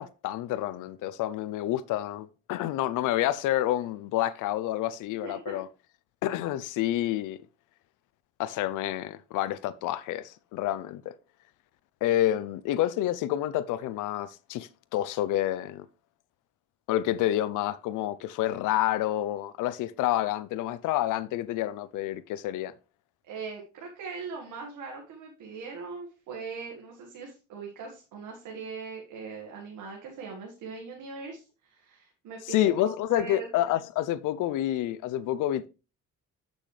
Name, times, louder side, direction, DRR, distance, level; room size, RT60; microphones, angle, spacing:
voice 1, 0.0-5.7 6.2-7.4 8.4-11.1 12.0-15.9 16.9-22.7 32.5-35.7, left 13 dB, 85° left, 0.5 m, -28 dB
voice 2, 5.2-5.6 23.3-33.5, right 5 dB, 85° right, 1.7 m, -40 dB
8.2 x 6.3 x 3.2 m
cardioid pair, 90°, 30 cm